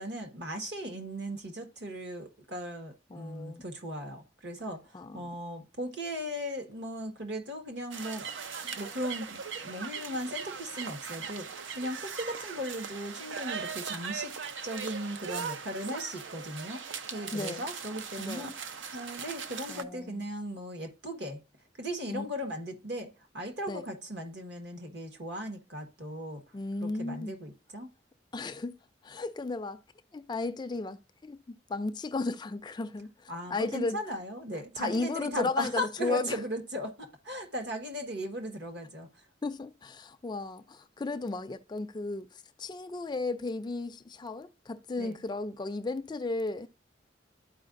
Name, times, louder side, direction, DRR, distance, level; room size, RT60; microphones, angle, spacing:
voice 1, 0.0-8.3 8.6-14.3 14.6-16.8 17.1-18.5 18.9-21.4 21.8-26.4 26.8-27.9 33.3-39.1 45.0-45.2, equal, 65° right, 1.4 m, -37 dB
voice 2, 3.1-3.6 4.9-5.2 17.3-17.7 18.2-18.5 19.7-20.3 22.1-22.3 23.7-23.9 26.5-27.4 28.3-28.8 29.0-29.8 30.1-34.2 34.5-36.4 39.4-46.7, left 3 dB, 25° left, 0.3 m, -35 dB
sound 1, 7.9-19.8, right 6 dB, 85° right, 0.6 m, -39 dB
12.5 x 4.6 x 2.5 m
head